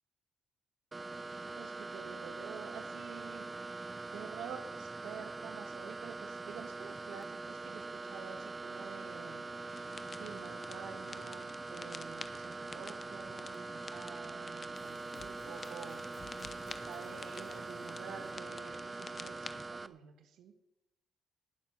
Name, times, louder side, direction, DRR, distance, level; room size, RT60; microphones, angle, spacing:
sound 1, 0.9-19.9, right 3 dB, 25° right, 0.7 m, -43 dB
voice 1, 1.6-3.5 4.1-9.4 10.2-20.6, right 7 dB, 80° right, 7 dB, 1.5 m, -49 dB
sound 2, 9.7-19.7, left 4 dB, 30° left, 0.9 m, -51 dB
sound 3, 14.7-18.9, left 4 dB, 85° left, 3.6 m, -58 dB
18.5 x 7.3 x 5.9 m, 0.88 s
cardioid pair, 90°, 0 cm